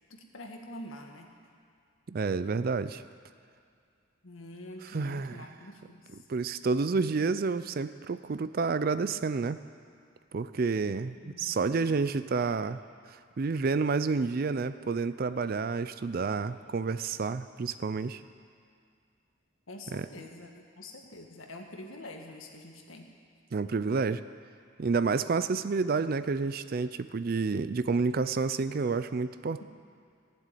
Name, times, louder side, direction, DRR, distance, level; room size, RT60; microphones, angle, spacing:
voice 1, 0.1-1.3 4.2-6.2 11.2-11.9 19.7-23.1, left 1 dB, 75° left, 2 dB, 1.6 m, -46 dB
voice 2, 2.1-3.0 4.9-5.4 6.3-9.6 10.3-12.8 13.4-18.2 19.9-20.1 23.5-24.2 24.8-29.6, right 4 dB, 45° right, 13 dB, 0.4 m, -29 dB
15.0 x 7.7 x 9.1 m, 2.3 s
head